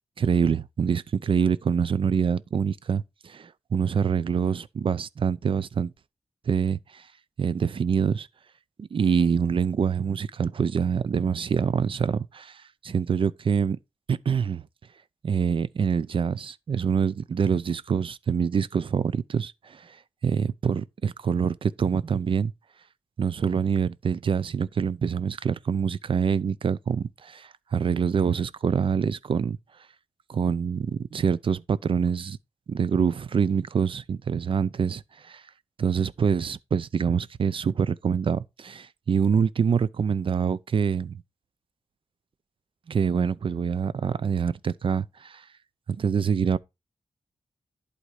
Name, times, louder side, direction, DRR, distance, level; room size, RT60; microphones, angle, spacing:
voice 1, 0.2-5.9 6.5-7.1 7.4-8.3 8.8-13.8 14.1-14.6 15.2-22.5 23.2-29.6 30.3-32.4 32.7-35.4 35.8-41.2 42.9-45.4 45.9-46.6, right 6 dB, 50° right, 0.5 m, -25 dB
11.0 x 4.1 x 4.8 m
wide cardioid pair, 120°, 11 cm